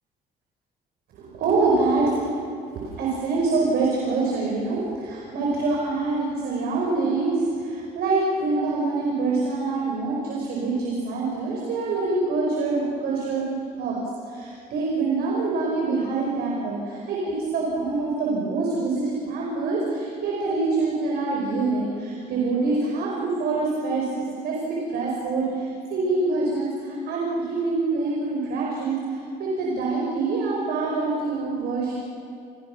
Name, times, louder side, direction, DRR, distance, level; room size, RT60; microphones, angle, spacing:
voice 1, 1.1-2.3 2.8-13.4 13.8-14.0 14.3-32.0, right 3 dB, 70° right, -2 dB, 5.1 m, -25 dB
28.5 x 21.5 x 6.0 m, 2.4 s
cardioid pair, 110°, 17 cm